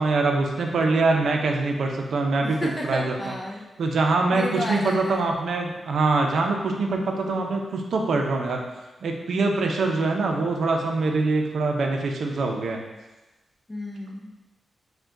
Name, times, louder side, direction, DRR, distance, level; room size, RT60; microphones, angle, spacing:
voice 1, 0.0-2.6 2.8-3.2 3.8-8.6 9.0-12.8, right 3 dB, 75° right, 2 dB, 0.5 m, -24 dB
voice 2, 2.4-3.6 4.3-5.3 13.7-14.3, left 1 dB, 20° left, -1 dB, 0.3 m, -31 dB
4.7 x 2.2 x 3.7 m, 1.1 s
wide cardioid pair, 160°, 0 cm